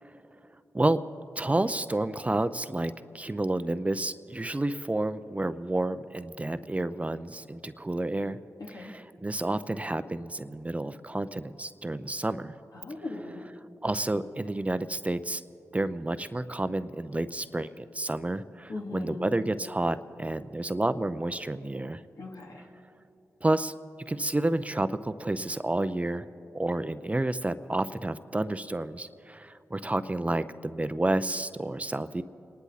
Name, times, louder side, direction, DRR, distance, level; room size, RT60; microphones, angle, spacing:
voice 1, 1.4-8.4 8.7-12.6 13.8-15.4 15.7-22.0 23.4-23.7 24.1-26.2 26.5-32.2, right 2 dB, 20° right, 13 dB, 0.6 m, -30 dB
voice 2, 8.6-8.9 12.7-13.4 18.7-19.3 22.2-22.7, left 2 dB, 75° left, -1 dB, 2.5 m, -39 dB
28.0 x 11.0 x 4.1 m, 2.7 s
cardioid pair, 45°, 6 cm